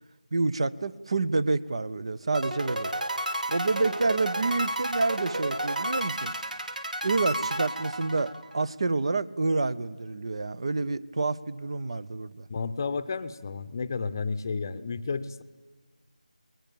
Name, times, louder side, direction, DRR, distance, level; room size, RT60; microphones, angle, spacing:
voice 1, 0.3-2.9 3.5-6.4 7.0-12.5, right 3 dB, 40° right, 16 dB, 0.8 m, -28 dB
sound 1, 2.3-8.6, right 1 dB, 75° right, 2.7 m, -31 dB
voice 2, 12.5-15.4, left 4 dB, 25° left, 11 dB, 0.8 m, -32 dB
20.5 x 20.5 x 8.5 m, 1.3 s
figure-of-eight pair, 170°, 4 cm